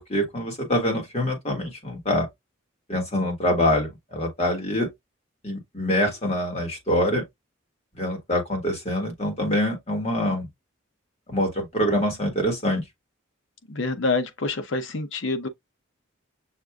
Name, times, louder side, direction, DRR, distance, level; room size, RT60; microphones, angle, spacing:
voice 1, 0.0-2.3 2.9-4.9 5.4-7.2 8.0-10.5 11.3-12.8, equal, 30° left, 1.7 m, -25 dB
voice 2, 13.7-15.5, left 3 dB, 65° left, 0.7 m, -27 dB
6.5 x 2.5 x 2.3 m
head